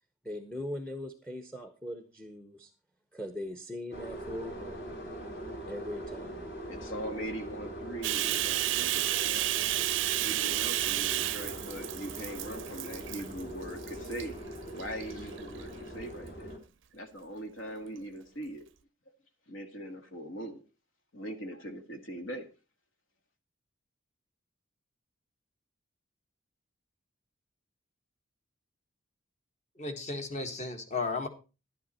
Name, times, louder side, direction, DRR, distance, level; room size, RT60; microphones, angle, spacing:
voice 1, 0.2-2.7 3.1-5.0 5.7-6.4, left 1 dB, 5° left, 9 dB, 0.8 m, -40 dB
sound 1, 3.9-16.6, right 1 dB, 50° left, 2.9 m, -42 dB
voice 2, 6.7-9.5 10.2-14.4 14.7-16.5 16.9-18.6 19.5-20.6 21.1-22.5, right 1 dB, 65° left, 7 dB, 1.9 m, -41 dB
Bathtub (filling or washing), 8.0-13.4 13.8-14.2 14.8-15.6, right 15 dB, 60° right, 0.5 m, -31 dB
voice 3, 29.8-31.3, left 3 dB, 35° left, 7 dB, 1.6 m, -34 dB
11.5 x 10.5 x 4.3 m, 0.31 s
head